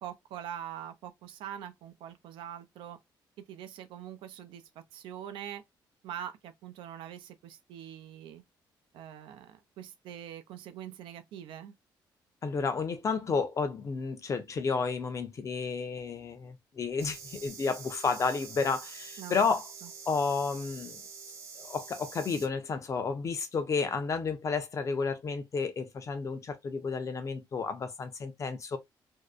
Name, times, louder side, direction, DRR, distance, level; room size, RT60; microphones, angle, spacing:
voice 1, 0.0-3.0 3.5-5.6 6.0-8.4 8.9-11.7 19.2-19.4 19.8-19.9, right 10 dB, 85° right, 0.4 m, -43 dB
voice 2, 12.4-19.7 20.1-21.0 21.6-28.8, left 5 dB, 40° left, 0.6 m, -31 dB
sound 1, 17.0-22.5, right 5 dB, 35° right, 0.6 m, -46 dB
2.6 x 2.1 x 2.3 m
cardioid pair, 105°, 8 cm